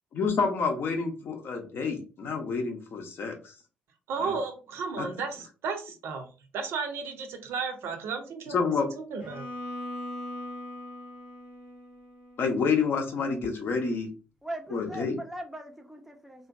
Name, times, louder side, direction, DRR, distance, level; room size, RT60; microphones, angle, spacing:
voice 1, 0.1-3.4 4.2-4.3 5.0-5.1 8.5-8.9 12.4-14.1 14.7-15.2, left 5 dB, 45° left, 0.6 m, -28 dB
voice 2, 4.1-6.3 6.5-8.6 9.1-9.5, right 5 dB, 55° right, 0.5 m, -33 dB
Bowed string instrument, 9.2-13.2, left 1 dB, 80° left, 0.9 m, -41 dB
voice 3, 14.4-16.5, right 1 dB, 5° right, 0.5 m, -40 dB
2.6 x 2.1 x 2.4 m
figure-of-eight pair, 45°, 5 cm